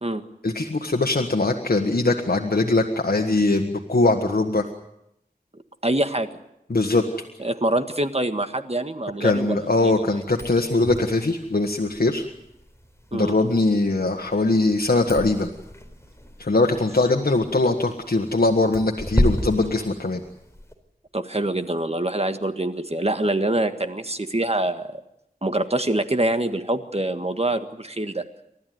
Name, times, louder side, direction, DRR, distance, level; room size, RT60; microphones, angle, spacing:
voice 1, 0.4-4.7 6.7-7.0 9.2-12.3 13.1-15.5 16.4-20.2, left 2 dB, 80° left, 3 dB, 1.5 m, -21 dB
voice 2, 5.8-6.3 7.4-10.1 13.1-13.4 21.1-25.0 25.4-28.2, right 1 dB, 40° right, 8 dB, 1.7 m, -25 dB
sound 1, 10.2-20.7, left 1 dB, 15° left, 4.2 m, -32 dB
29.5 x 13.5 x 9.5 m, 0.83 s
wide cardioid pair, 50°, 16 cm